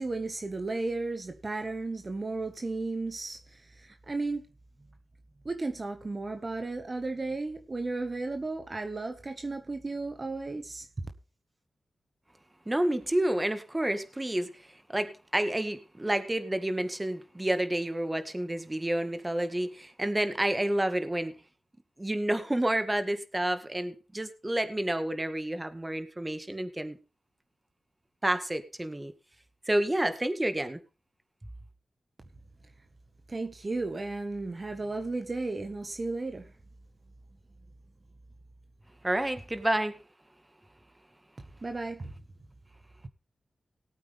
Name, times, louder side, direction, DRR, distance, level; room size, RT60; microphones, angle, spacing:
voice 1, 0.0-4.4 5.4-10.9 33.3-36.5 41.6-42.1, right 3 dB, 45° right, 1.6 m, -34 dB
voice 2, 12.7-21.3 22.0-27.0 28.2-29.1 29.7-30.8 39.0-40.0, right 1 dB, 20° right, 1.9 m, -29 dB
18.5 x 8.6 x 3.6 m
cardioid pair, 45°, 0 cm